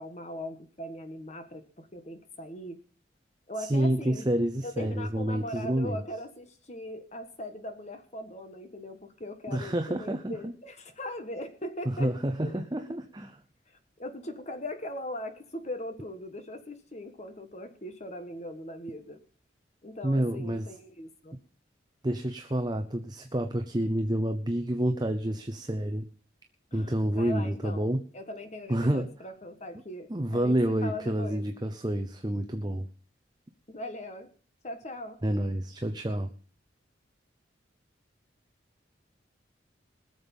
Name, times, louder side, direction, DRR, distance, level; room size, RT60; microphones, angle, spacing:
voice 1, 0.0-2.8 3.5-4.3 4.6-12.1 12.4-12.6 13.7-19.2 19.8-21.4 26.7-31.4 33.7-34.3 34.6-35.2, left 1 dB, 35° left, 8 dB, 1.5 m, -40 dB
voice 2, 3.6-6.0 9.5-10.5 11.9-13.4 20.0-20.7 22.0-26.1 26.7-28.0 28.7-29.1 30.1-32.9 35.2-36.3, right 1 dB, 20° right, 7 dB, 0.8 m, -29 dB
21.0 x 7.1 x 5.4 m, 0.42 s
head